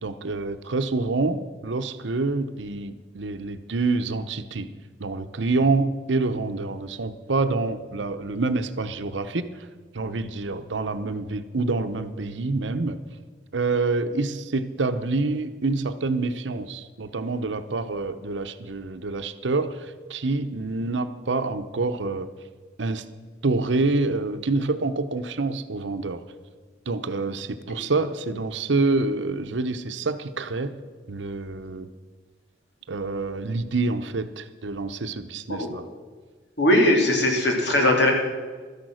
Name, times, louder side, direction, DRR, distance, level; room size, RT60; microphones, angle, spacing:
voice 1, 0.0-4.7 5.0-9.7 9.9-13.0 13.5-22.3 22.8-23.1 23.4-26.2 26.9-30.8 31.1-31.9 32.9-35.8, right 3 dB, 80° right, 10 dB, 0.8 m, -27 dB
voice 2, 36.6-38.1, left 1 dB, 65° left, 1 dB, 2.9 m, -20 dB
13.0 x 10.5 x 6.3 m, 1.5 s
head